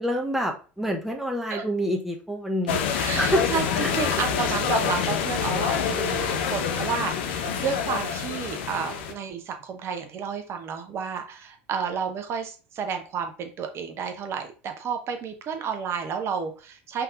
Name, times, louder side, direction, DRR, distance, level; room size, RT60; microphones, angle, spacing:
voice 1, 0.0-2.8 3.2-3.4 3.7-4.2, equal, 5° right, 1 dB, 0.9 m, -27 dB
sound 1, 2.7-9.1, left 7 dB, 65° left, 0.7 m, -26 dB
voice 2, 2.9-6.2 6.5-17.0, right 6 dB, 40° right, 5 dB, 0.9 m, -31 dB
5.6 x 3.6 x 2.5 m, 0.35 s
figure-of-eight pair, 70°, 7 cm